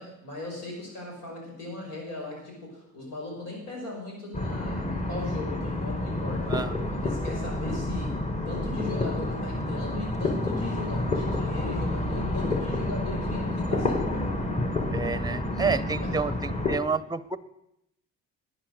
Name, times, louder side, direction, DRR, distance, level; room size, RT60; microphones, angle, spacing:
voice 1, 0.0-6.6 6.9-8.2 8.5-14.4 16.0-16.1, left 2 dB, 90° left, -1 dB, 5.3 m, -38 dB
sound 1, 4.3-16.8, left 2 dB, 20° left, 1.6 m, -29 dB
voice 2, 14.9-17.4, right 5 dB, 15° right, 16 dB, 0.7 m, -29 dB
11.0 x 8.9 x 6.6 m, 0.81 s
cardioid pair, 90°, 30 cm